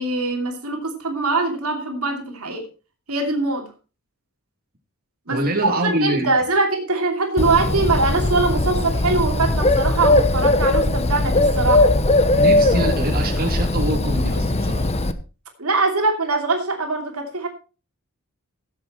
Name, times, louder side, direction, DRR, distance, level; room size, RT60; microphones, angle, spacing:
voice 1, 0.0-2.6 3.1-3.7 5.3-5.4 5.8-11.8 15.6-17.5, right 3 dB, 75° right, 3 dB, 2.8 m, -22 dB
voice 2, 5.3-6.3 12.3-14.9, right 1 dB, 45° right, 1 dB, 2.9 m, -24 dB
Bird, 7.4-15.1, left 2 dB, 30° left, 1.0 m, -19 dB
16.0 x 8.1 x 4.3 m, 0.34 s
head